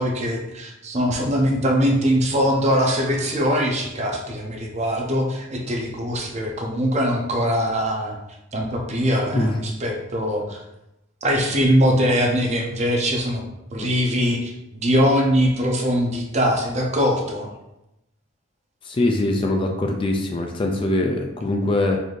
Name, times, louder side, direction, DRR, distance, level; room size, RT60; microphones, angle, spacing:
voice 1, 0.0-8.2 8.5-10.6 11.2-13.4 13.7-14.5 14.8-17.5, equal, 35° right, 1 dB, 0.6 m, -22 dB
voice 2, 18.8-22.0, left 2 dB, 25° left, 2 dB, 0.3 m, -22 dB
4.0 x 2.6 x 3.2 m, 0.90 s
head